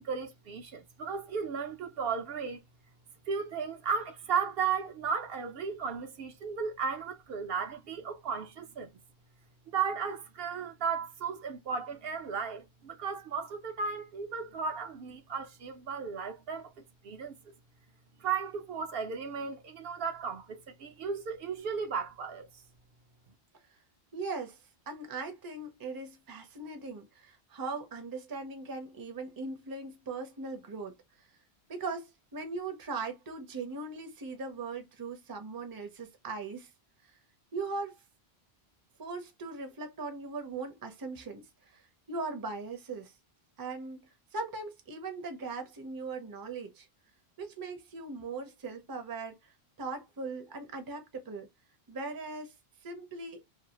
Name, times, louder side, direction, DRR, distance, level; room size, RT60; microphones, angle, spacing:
voice 1, 0.0-2.6 3.3-8.9 9.7-16.7 17.0-17.4 18.2-22.5, right 6 dB, 70° right, 0.7 m, -35 dB
voice 2, 24.1-24.6 24.9-31.0 31.7-36.7 37.5-38.0 39.0-43.1 43.6-46.9 47.4-51.5 51.9-52.5 52.8-53.4, right 3 dB, 25° right, 0.5 m, -39 dB
2.6 x 2.3 x 2.8 m
omnidirectional pair, 1.1 m